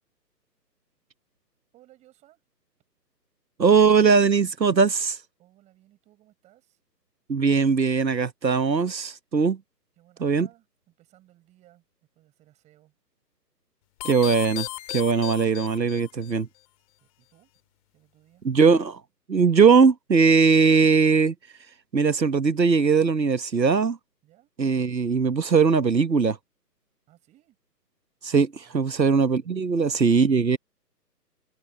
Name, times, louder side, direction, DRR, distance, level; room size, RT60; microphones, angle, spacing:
voice 1, 1.7-2.4 5.4-6.8 10.0-11.8 12.1-12.9 17.0-17.5 17.9-18.5 24.2-24.5 27.1-27.6 28.6-29.2 29.8-29.9, right 15 dB, 15° right, 7.2 m, -59 dB
voice 2, 3.6-5.2 7.3-9.6 10.2-10.5 14.0-16.5 18.4-19.0 19.3-21.3 21.9-24.0 24.6-26.4 28.2-30.6, right 5 dB, 90° right, 1.1 m, -20 dB
sound 1, 14.0-16.3, left 20 dB, 20° left, 2.8 m, -36 dB
open air
figure-of-eight pair, 145°, 50 cm